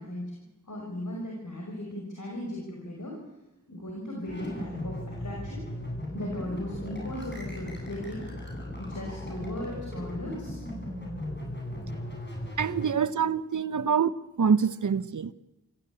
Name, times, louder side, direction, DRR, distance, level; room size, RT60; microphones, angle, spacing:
voice 1, 0.0-3.2 3.7-5.6 6.1-8.3 8.8-10.6 13.1-13.2, left 1 dB, 75° left, -1 dB, 5.7 m, -37 dB
sound 1, 4.3-12.9, left 1 dB, 35° left, 7.9 m, -37 dB
voice 2, 12.6-14.1 14.4-15.3, right 6 dB, 75° right, 16 dB, 0.9 m, -25 dB
26.0 x 15.0 x 8.6 m, 0.95 s
cardioid pair, 40°, 31 cm